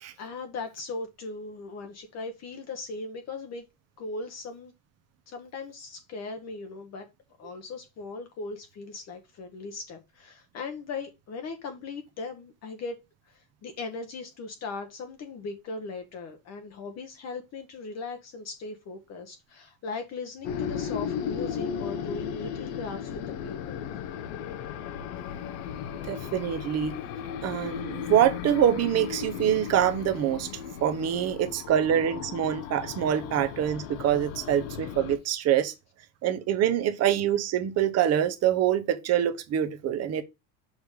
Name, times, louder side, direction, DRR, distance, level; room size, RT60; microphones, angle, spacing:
voice 1, 0.2-3.6 4.0-4.7 5.3-7.1 7.4-13.0 13.3-23.9, left 3 dB, 30° left, 0.9 m, -38 dB
sound 1, 20.4-35.2, left 8 dB, 75° left, 1.1 m, -36 dB
voice 2, 26.1-27.0 27.4-30.5 30.8-35.7 36.2-40.2, right 10 dB, 30° right, 0.8 m, -25 dB
6.5 x 3.5 x 4.7 m
cardioid pair, 155°, 49 cm